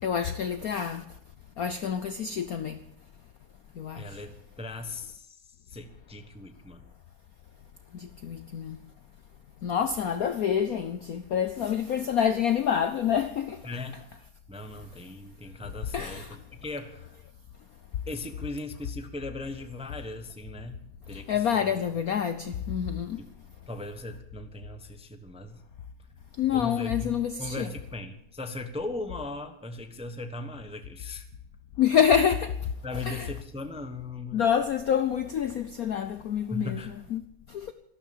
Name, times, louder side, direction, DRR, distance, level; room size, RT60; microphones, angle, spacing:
voice 1, 0.0-1.0 1.6-2.8 3.8-4.2 7.9-8.8 9.6-13.6 15.9-16.4 21.1-23.3 26.4-27.7 31.8-32.7 33.0-33.3 34.3-36.8 37.1-37.7, left 8 dB, 65° left, 0.9 m, -27 dB
voice 2, 4.0-6.9 13.6-14.0 14.5-17.1 18.1-20.7 21.1-21.9 23.2-23.3 23.7-25.6 26.5-31.2 32.8-34.4 36.5-36.9, left 2 dB, 5° right, 0.8 m, -38 dB
13.0 x 12.0 x 8.8 m
omnidirectional pair, 2.3 m